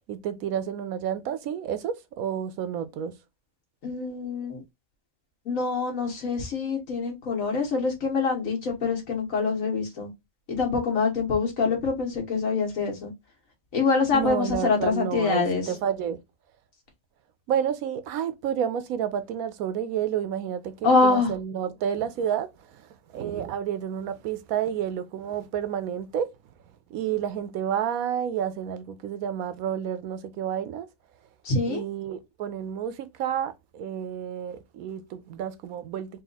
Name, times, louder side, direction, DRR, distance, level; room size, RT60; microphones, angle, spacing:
voice 1, 0.1-3.2 14.1-16.2 17.5-26.3 26.9-30.9 31.7-36.2, right 9 dB, 90° right, 1.1 m, -30 dB
voice 2, 3.8-4.6 5.5-10.1 10.5-13.1 13.7-15.7 20.8-21.3 31.4-31.8, left 4 dB, 70° left, 1.8 m, -25 dB
4.1 x 2.4 x 3.9 m
omnidirectional pair, 1.5 m